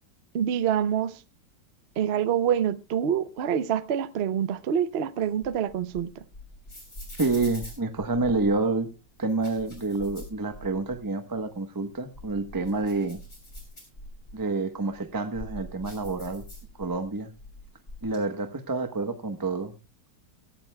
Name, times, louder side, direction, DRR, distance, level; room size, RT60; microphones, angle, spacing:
voice 1, 0.3-1.1 2.0-6.2, right 9 dB, 60° right, 0.7 m, -26 dB
sound 1, 5.2-8.6 9.2-11.0 11.4-11.5 12.0-14.4 14.9-17.1 17.4-18.2, equal, 40° left, 6.8 m, -43 dB
voice 2, 7.2-8.9 9.2-13.2 14.3-16.4 16.8-17.3 18.0-19.7, right 3 dB, 20° right, 0.7 m, -28 dB
17.5 x 15.5 x 2.2 m
omnidirectional pair, 1.9 m